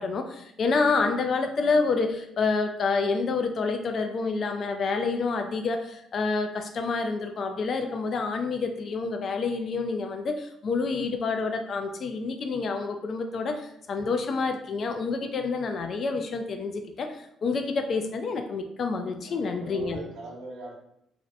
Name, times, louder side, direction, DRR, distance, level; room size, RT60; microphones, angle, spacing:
voice 1, 0.0-20.0, left 4 dB, 45° left, 6 dB, 0.3 m, -28 dB
voice 2, 19.2-20.7, right 2 dB, 85° right, -2 dB, 0.7 m, -41 dB
2.5 x 2.0 x 2.5 m, 0.74 s
cardioid pair, 125°, 0 cm